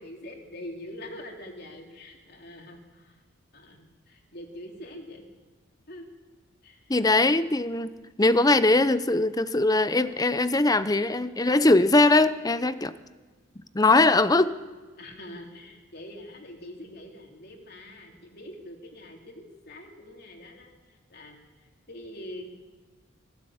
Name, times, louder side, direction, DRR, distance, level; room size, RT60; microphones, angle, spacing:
voice 1, 0.0-3.2 3.5-5.3 5.9-6.1 6.6-6.9 15.0-22.5, left 1 dB, 55° left, 2 dB, 3.4 m, -44 dB
voice 2, 6.9-7.9 8.2-12.9 13.6-14.5, left 2 dB, 20° left, 13 dB, 0.7 m, -21 dB
20.5 x 16.0 x 8.7 m, 1.3 s
head